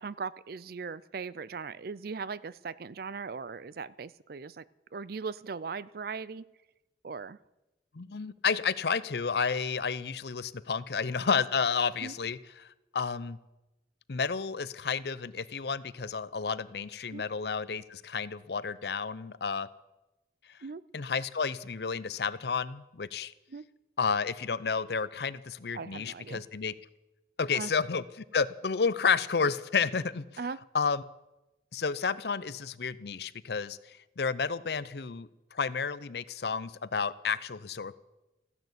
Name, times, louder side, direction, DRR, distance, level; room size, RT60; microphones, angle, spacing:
voice 1, 0.0-4.6 4.9-6.4 7.0-7.4 12.0-12.1 17.1-17.2 20.6-20.8 23.5-23.6 25.7-26.4 27.5-27.7 30.4-30.6, right 5 dB, 55° right, 19 dB, 0.5 m, -39 dB
voice 2, 7.9-12.7 12.9-13.4 14.1-19.7 20.9-23.3 24.0-26.7 27.4-30.2 30.7-31.0 31.7-37.9, left 5 dB, 65° left, 17 dB, 0.6 m, -31 dB
15.0 x 11.0 x 8.1 m, 0.99 s
head